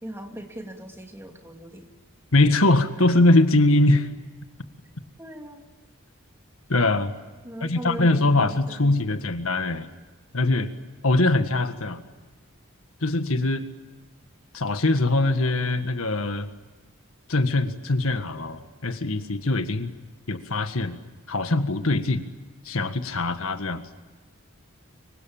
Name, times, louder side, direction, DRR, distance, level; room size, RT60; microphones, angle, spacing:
voice 1, 0.0-1.9 5.2-5.6 7.4-9.2, right 1 dB, 10° right, 3 dB, 2.8 m, -39 dB
voice 2, 2.3-4.1 6.7-7.1 7.6-9.9 10.3-10.7 11.0-12.0 13.0-13.7 14.5-16.5 17.3-19.9 20.3-21.0 21.3-22.2 22.7-23.8, left 2 dB, 75° left, 8 dB, 1.7 m, -22 dB
25.5 x 24.0 x 8.8 m, 1.3 s
head